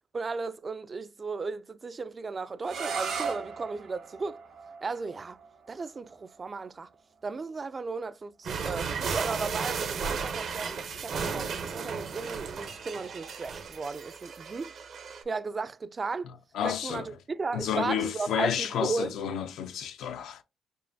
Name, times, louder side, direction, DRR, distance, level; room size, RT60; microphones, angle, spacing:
voice 1, 0.1-4.4 4.8-5.4 5.7-6.9 7.2-14.7 15.3-16.3 16.6-19.1, right 4 dB, 35° right, 0.3 m, -35 dB
sound 1, 2.6-8.4, right 5 dB, 85° right, 1.5 m, -39 dB
sound 2, 8.4-15.2, right 6 dB, 65° right, 0.7 m, -34 dB
voice 2, 16.5-17.1 17.5-20.4, left 9 dB, 80° left, 0.5 m, -31 dB
5.3 x 2.2 x 2.6 m
cardioid pair, 90°, 0 cm